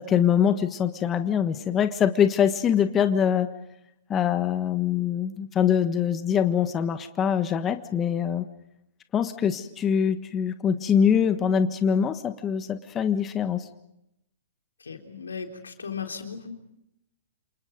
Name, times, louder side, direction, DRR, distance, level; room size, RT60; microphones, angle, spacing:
voice 1, 0.0-3.5 4.1-8.4 9.1-13.7, left 8 dB, 20° left, 9 dB, 1.4 m, -23 dB
voice 2, 14.8-16.6, left 6 dB, 85° left, 4 dB, 3.8 m, -36 dB
28.5 x 28.0 x 5.3 m, 0.83 s
hypercardioid pair, 120°, 0 cm